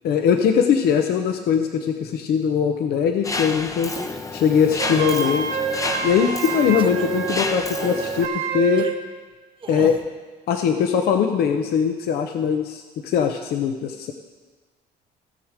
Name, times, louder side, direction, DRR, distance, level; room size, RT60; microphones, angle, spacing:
voice 1, 0.0-3.9 4.3-5.5 6.0-8.9 9.7-10.0 10.5-14.1, left 7 dB, 70° left, 5 dB, 0.8 m, -21 dB
Mechanisms, 3.2-8.3, left 3 dB, 20° left, 0.7 m, -30 dB
sound 1, 3.9-4.3 4.8-5.2 5.7-6.2 6.8-7.1 7.8-8.2 8.8-9.0 9.6-10.1, right 5 dB, 30° right, 0.9 m, -38 dB
Wind instrument woodwind instrument, 4.8-9.0, right 7 dB, 85° right, 1.3 m, -27 dB
17.0 x 6.5 x 5.0 m, 1.4 s
cardioid pair, 110°, 17 cm